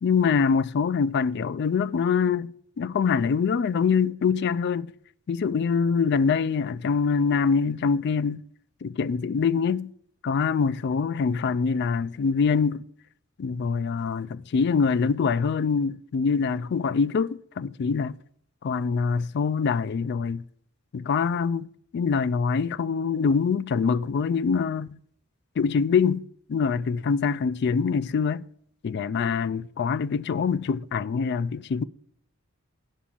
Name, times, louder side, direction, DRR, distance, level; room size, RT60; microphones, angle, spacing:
voice 1, 0.0-4.9 5.3-8.4 8.8-9.9 10.2-12.8 13.4-18.2 18.6-20.4 20.9-21.7 21.9-25.0 25.6-26.2 26.5-28.4 28.8-31.8, left 5 dB, 55° left, 0.3 m, -24 dB
9.9 x 6.0 x 7.1 m
head